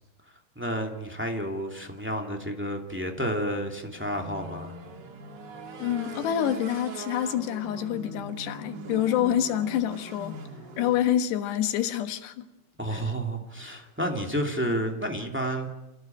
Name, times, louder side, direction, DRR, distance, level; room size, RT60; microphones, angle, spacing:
voice 1, 0.5-4.7 12.8-15.7, equal, 5° right, 2 dB, 1.3 m, -30 dB
sound 1, 4.0-11.0, right 3 dB, 40° right, 1.7 m, -41 dB
voice 2, 5.8-10.4 10.8-12.5 12.9-13.0, left 11 dB, 80° left, 8 dB, 3.4 m, -27 dB
28.5 x 16.5 x 9.1 m, 1.0 s
omnidirectional pair, 4.8 m